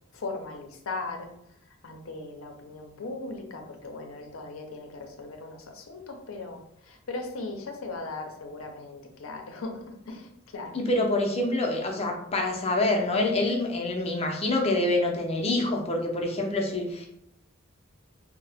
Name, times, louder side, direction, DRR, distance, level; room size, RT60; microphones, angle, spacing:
voice 1, 0.1-1.3 1.8-10.8, left 3 dB, 80° left, 4 dB, 0.6 m, -38 dB
voice 2, 10.7-17.1, left 2 dB, 30° left, 1 dB, 0.5 m, -26 dB
2.7 x 2.1 x 3.3 m, 0.76 s
head